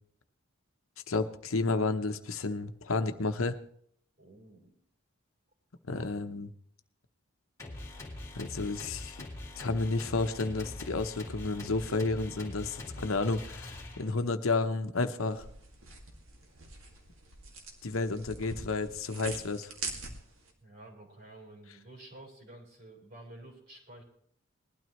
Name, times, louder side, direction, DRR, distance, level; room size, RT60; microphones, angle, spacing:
voice 1, 1.1-3.5 5.9-6.5 8.3-9.2 9.6-15.4 17.8-19.7, left 3 dB, 85° left, 8 dB, 1.0 m, -31 dB
voice 2, 4.2-4.8 5.9-6.1 20.6-24.0, right 1 dB, 45° right, 0 dB, 4.5 m, -51 dB
sound 1, 7.6-14.3, left 2 dB, 15° left, 2.2 m, -43 dB
sound 2, 15.3-20.5, right 3 dB, 80° right, 2.3 m, -44 dB
20.5 x 12.5 x 3.2 m, 0.63 s
head